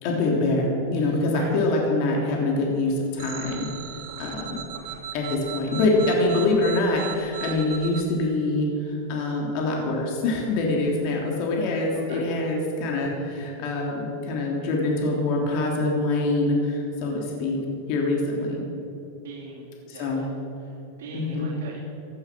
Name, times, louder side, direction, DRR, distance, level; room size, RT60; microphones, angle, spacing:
voice 1, 0.0-3.7 4.2-4.6 5.1-17.6 17.9-18.6 19.9-20.2 21.1-21.5, left 2 dB, 50° left, -1 dB, 3.2 m, -25 dB
voice 2, 1.0-1.5 4.1-4.4 4.7-5.1 12.0-12.3 19.2-20.1 20.6-21.8, right 5 dB, 85° right, -4 dB, 3.0 m, -42 dB
sound 1, 3.2-8.0, right 10 dB, 60° right, 2.1 m, -37 dB
16.5 x 11.0 x 6.2 m, 2.9 s
supercardioid pair, 150°, 0 cm